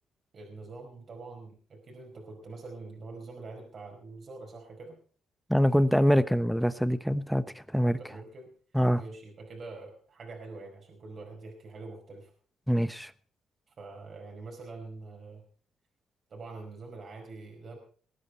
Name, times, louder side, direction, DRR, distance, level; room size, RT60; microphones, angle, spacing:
voice 1, 0.3-5.0 7.8-8.5 8.9-12.3 13.8-15.4 16.3-17.8, right 3 dB, 50° right, 1 dB, 5.1 m, -45 dB
voice 2, 5.5-8.0 8.7-9.0 12.7-13.1, equal, ahead, 13 dB, 0.9 m, -24 dB
21.5 x 9.8 x 4.5 m, 0.43 s
cardioid pair, 90°, 0 cm